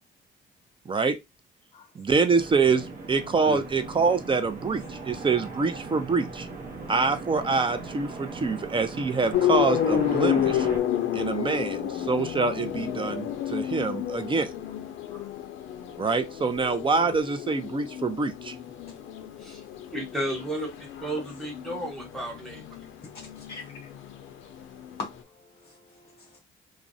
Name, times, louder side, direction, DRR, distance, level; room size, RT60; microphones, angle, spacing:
voice 1, 2.0-6.5 6.9-10.7 11.1-14.5 16.0-18.6, right 4 dB, 25° right, 0.4 m, -25 dB
sound 1, 2.4-10.8, right 3 dB, 45° right, 0.8 m, -38 dB
sound 2, 9.3-25.2, left 10 dB, 80° left, 0.5 m, -31 dB
voice 2, 19.9-20.7 21.0-22.8, right 1 dB, ahead, 1.1 m, -33 dB
voice 3, 23.4-23.9 25.0-25.1 25.4-26.4, left 2 dB, 30° left, 0.6 m, -40 dB
2.4 x 2.0 x 2.5 m
cardioid pair, 90°, 20 cm